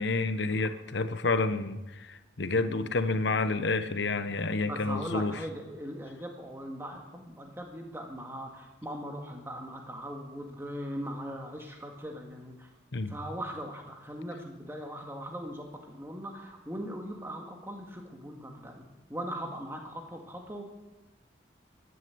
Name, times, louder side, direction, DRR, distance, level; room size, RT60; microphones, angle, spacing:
voice 1, 0.0-5.4 12.9-13.2, left 3 dB, 75° left, 11 dB, 0.9 m, -29 dB
voice 2, 2.5-2.9 4.7-12.7 13.1-18.8 19.1-20.6, equal, 15° right, 2 dB, 1.9 m, -40 dB
13.0 x 10.5 x 7.9 m, 1.1 s
head